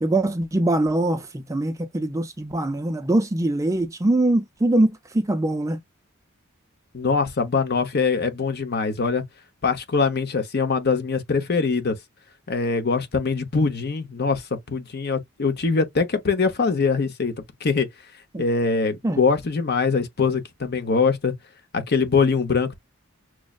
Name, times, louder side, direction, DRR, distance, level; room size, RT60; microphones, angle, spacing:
voice 1, 0.0-5.8 18.3-18.4 19.0-19.2, right 1 dB, 15° right, 0.4 m, -23 dB
voice 2, 6.9-9.2 9.6-12.0 12.5-14.4 14.7-17.3 17.6-17.9 18.4-21.3 21.7-22.8, left 4 dB, 50° left, 0.8 m, -23 dB
6.1 x 2.1 x 2.3 m
head